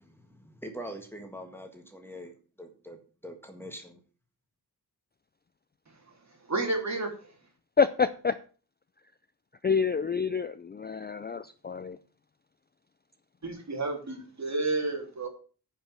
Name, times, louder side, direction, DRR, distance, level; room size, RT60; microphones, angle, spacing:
voice 1, 0.0-4.0, equal, 5° left, 3 dB, 1.7 m, -44 dB
voice 2, 6.5-7.3 13.4-15.3, right 3 dB, 45° right, 2 dB, 3.2 m, -31 dB
voice 3, 7.8-8.3 9.6-12.0, left 5 dB, 25° left, 13 dB, 0.4 m, -27 dB
10.0 x 5.7 x 7.4 m, 0.39 s
wide cardioid pair, 145°, 39 cm